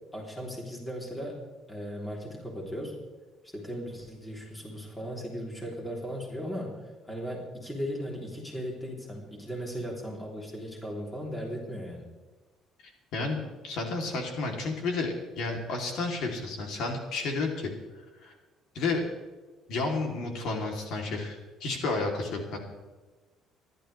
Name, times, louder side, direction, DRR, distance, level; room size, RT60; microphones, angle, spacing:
voice 1, 0.1-1.4 1.7-3.0 3.4-12.1, equal, 10° left, -2 dB, 3.4 m, -37 dB
voice 2, 12.8-17.7 18.2-18.3 18.7-19.0 19.7-22.6, left 3 dB, 60° left, 1 dB, 3.1 m, -31 dB
27.5 x 12.5 x 3.4 m, 1.2 s
cardioid pair, 165°, 0 cm